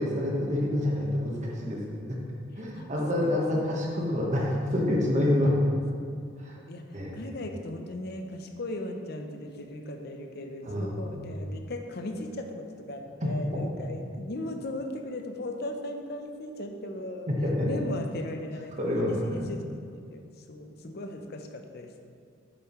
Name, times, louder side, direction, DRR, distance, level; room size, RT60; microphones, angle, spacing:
voice 1, 0.0-1.8 2.1-2.2 2.6-5.5 6.4-6.6 6.9-7.2 10.6-11.2 13.2-13.3 17.3-17.7 18.8-19.4, left 1 dB, 35° right, -3 dB, 1.3 m, -27 dB
voice 2, 3.2-3.9 6.1-17.3 17.6-19.6 20.1-20.2 20.5-22.0, left 1 dB, 55° left, 4 dB, 0.7 m, -38 dB
8.2 x 7.0 x 3.1 m, 2.3 s
head